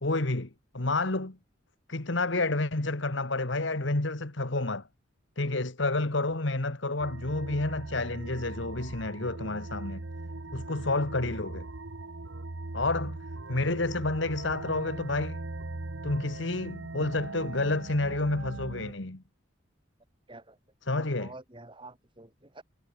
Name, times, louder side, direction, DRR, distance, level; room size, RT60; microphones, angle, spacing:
voice 1, 0.0-0.5 0.7-1.4 1.9-4.8 5.4-10.0 10.5-11.7 12.7-13.2 13.5-15.4 16.0-19.2 20.9-21.3, left 2 dB, 65° left, 1.7 m, -29 dB
sound 1, 7.0-18.9, right 2 dB, 75° right, 1.2 m, -40 dB
voice 2, 20.9-22.6, right 2 dB, 25° right, 3.4 m, -48 dB
head